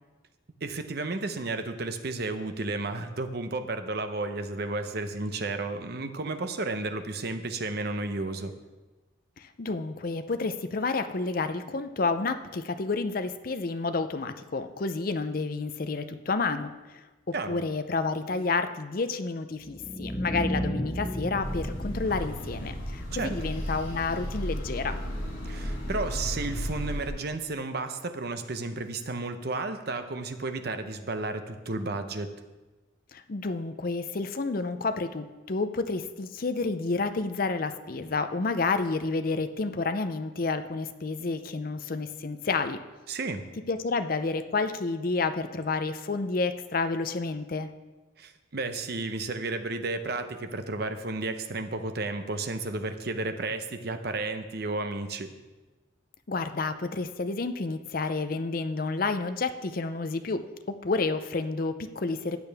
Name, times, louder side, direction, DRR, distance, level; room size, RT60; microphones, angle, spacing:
voice 1, 0.6-8.5 17.3-17.6 23.1-23.4 25.5-32.3 43.1-43.4 48.2-55.3, right 3 dB, 55° right, 8 dB, 0.8 m, -32 dB
voice 2, 9.4-25.0 33.1-42.8 43.7-47.7 56.3-62.4, left 3 dB, 45° left, 10 dB, 0.5 m, -30 dB
sound 1, 19.6-25.6, equal, 15° left, 0.7 m, -36 dB
sound 2, 21.4-27.1, equal, 85° left, 3.8 m, -34 dB
14.0 x 8.7 x 3.5 m, 1.2 s
head